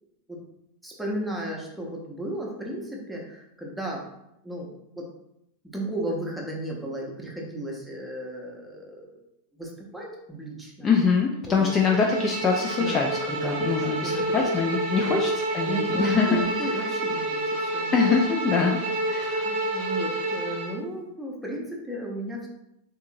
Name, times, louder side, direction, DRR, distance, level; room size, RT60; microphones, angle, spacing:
voice 1, 0.8-4.1 4.4-4.7 5.0-5.1 5.7-9.2 9.5-10.9 11.5-11.7 12.7-13.0 13.4-14.5 15.0-15.1 15.7-18.0 19.4-22.5, right 1 dB, 5° right, -2 dB, 0.7 m, -34 dB
voice 2, 10.8-16.4 17.9-18.8 19.1-19.5, left 5 dB, 25° left, 0 dB, 0.4 m, -24 dB
Bowed string instrument, 11.6-20.8, right 1 dB, 45° right, 0.7 m, -28 dB
3.6 x 2.7 x 2.5 m, 0.83 s
figure-of-eight pair, 90°, 0 cm